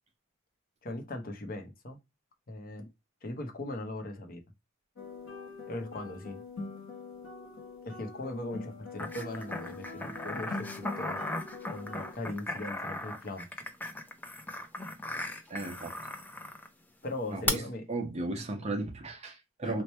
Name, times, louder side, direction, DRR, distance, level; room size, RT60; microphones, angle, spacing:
voice 1, 0.8-2.0 2.5-2.9 3.2-4.4 5.7-6.4 7.8-11.2 11.7-13.5 17.0-17.8 19.6-19.8, left 2 dB, 45° left, 0.7 m, -39 dB
sound 1, 5.0-12.1, left 3 dB, 85° left, 1.1 m, -44 dB
sound 2, 9.0-16.7 17.5-17.6, left 2 dB, 10° left, 0.4 m, -37 dB
voice 2, 15.5-16.0 17.3-17.6 17.9-19.8, right 2 dB, 30° right, 0.6 m, -35 dB
3.1 x 2.2 x 4.1 m
head